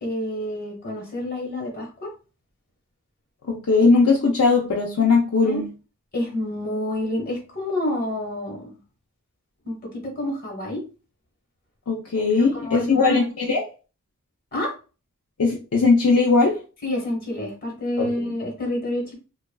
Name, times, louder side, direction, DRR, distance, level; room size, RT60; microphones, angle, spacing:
voice 1, 0.0-2.1 5.4-5.6 6.1-8.7 9.6-10.8 12.4-13.2 14.5-14.7 16.8-19.2, left 1 dB, 45° left, 1.2 m, -28 dB
voice 2, 3.4-5.7 11.9-13.6 15.4-16.6 18.0-18.3, left 4 dB, 70° left, 0.5 m, -19 dB
3.0 x 2.3 x 2.2 m
head